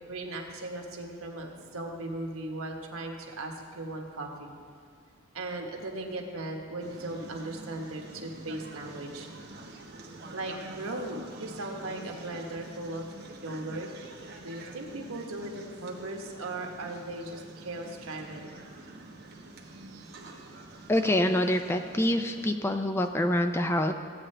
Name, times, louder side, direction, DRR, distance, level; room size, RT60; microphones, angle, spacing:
voice 1, 0.1-4.5 5.3-9.3 10.3-13.1 13.4-13.9 14.4-18.5 19.7-20.4, right 2 dB, 85° right, 2 dB, 1.2 m, -38 dB
sound 1, 6.8-22.5, right 2 dB, 50° right, 1.0 m, -46 dB
voice 2, 20.9-23.9, left 1 dB, 10° left, 7 dB, 0.3 m, -26 dB
15.5 x 8.5 x 3.3 m, 2.2 s
head